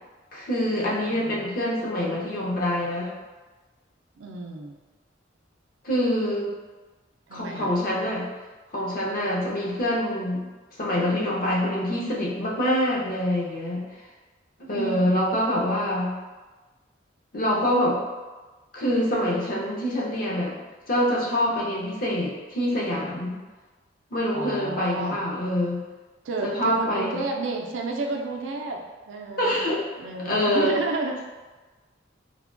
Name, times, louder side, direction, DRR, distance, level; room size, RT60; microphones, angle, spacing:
voice 1, 0.3-3.1 5.8-6.5 7.3-8.3 8.7-10.4 10.8-13.8 14.7-16.1 17.3-18.0 18.7-20.6 20.9-23.4 24.1-25.8 26.4-27.1 29.4-29.8 30.3-30.7, equal, 45° left, -4 dB, 0.6 m, -25 dB
voice 2, 1.1-1.4 4.2-4.8 7.3-7.7 14.7-15.2 24.3-25.2 26.2-29.6 30.0-31.2, right 3 dB, 85° right, 1 dB, 0.4 m, -31 dB
3.3 x 2.2 x 2.4 m, 1.2 s
head